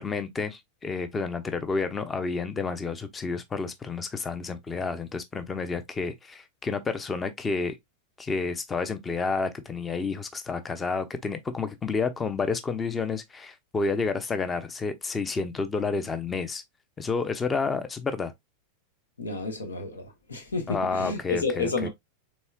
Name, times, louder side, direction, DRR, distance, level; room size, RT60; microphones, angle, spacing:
voice 1, 0.0-7.8 8.2-16.6 17.0-18.3 20.7-21.9, left 4 dB, 15° left, 0.7 m, -30 dB
voice 2, 19.2-21.9, left 3 dB, 75° left, 1.1 m, -31 dB
4.2 x 3.5 x 2.3 m
figure-of-eight pair, 90°, 0 cm